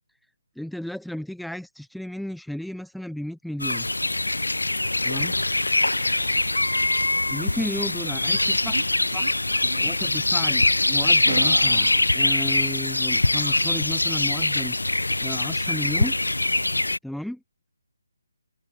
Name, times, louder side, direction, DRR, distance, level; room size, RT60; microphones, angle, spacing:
voice 1, 0.6-3.9 5.0-5.3 7.3-9.3 9.8-14.8 15.2-16.1 17.0-17.4, left 1 dB, ahead, 0.7 m, -34 dB
sound 1, 3.6-17.0, left 2 dB, 85° left, 0.5 m, -23 dB
sound 2, 5.7-6.5 7.4-8.0 8.6-8.9 9.1-9.3 9.6-9.9 11.2-12.2, right 5 dB, 55° right, 4.2 m, -35 dB
open air
figure-of-eight pair, 150°, 0 cm